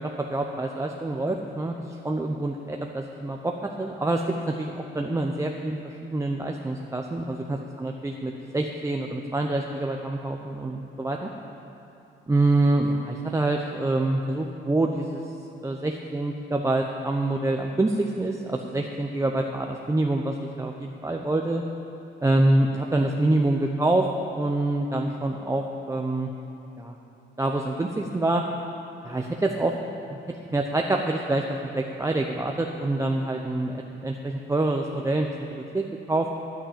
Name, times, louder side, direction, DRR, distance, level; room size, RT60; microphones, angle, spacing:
voice 1, 0.0-11.3 12.3-15.2 15.6-21.6 22.2-24.1 24.3-26.3 26.8-27.0 27.4-28.4 29.0-29.7 30.1-30.2 30.5-31.4 31.7-36.3, right 2 dB, 15° right, 1 dB, 0.8 m, -26 dB
10.0 x 8.8 x 8.8 m, 2.9 s
cardioid pair, 90°, 20 cm